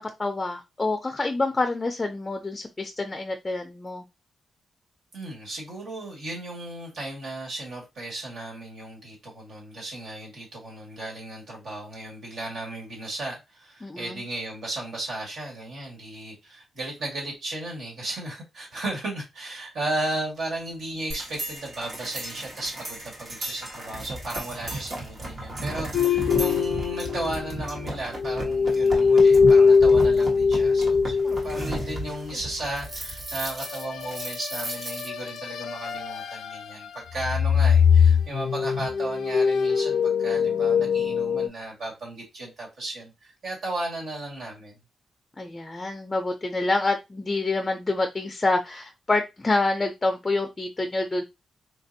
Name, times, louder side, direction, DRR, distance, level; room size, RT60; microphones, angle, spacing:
voice 1, 0.0-4.0 13.8-14.2 25.6-25.8 45.4-51.2, left 2 dB, 20° left, 0.4 m, -27 dB
voice 2, 5.1-44.7, right 2 dB, 70° right, 1.9 m, -35 dB
sound 1, 21.1-35.4, right 1 dB, 50° right, 1.2 m, -35 dB
sound 2, 25.9-27.9 28.1-32.0 33.6-36.9 37.1-41.5, left 5 dB, 80° left, 0.4 m, -22 dB
3.8 x 2.5 x 2.6 m
cardioid pair, 120°, 0 cm